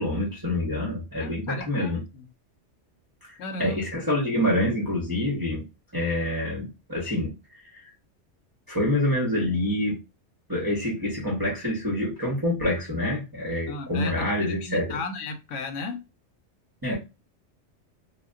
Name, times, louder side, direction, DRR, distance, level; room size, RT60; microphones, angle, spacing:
voice 1, 0.0-2.0 3.2-5.6 5.9-7.3 7.7-7.8 8.7-10.0 10.5-15.0 16.8-17.0, left 1 dB, 20° right, 0.6 m, -26 dB
voice 2, 1.2-2.2 3.4-3.8 13.7-16.0, left 3 dB, 90° left, 1.0 m, -35 dB
2.2 x 2.1 x 3.5 m
omnidirectional pair, 1.2 m